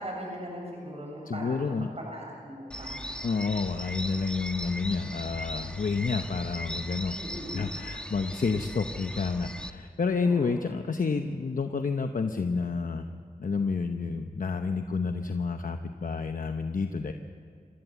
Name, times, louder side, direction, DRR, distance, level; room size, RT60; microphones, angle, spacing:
voice 1, 0.0-1.6 2.0-3.0 7.1-7.8 10.2-10.6, equal, 45° right, -1 dB, 7.3 m, -39 dB
voice 2, 1.3-1.9 3.2-7.2 7.5-17.1, left 4 dB, 70° left, 6 dB, 0.9 m, -29 dB
sound 1, 2.7-9.7, equal, 5° left, 1.4 m, -38 dB
26.5 x 15.0 x 8.4 m, 2.2 s
cardioid pair, 45°, 15 cm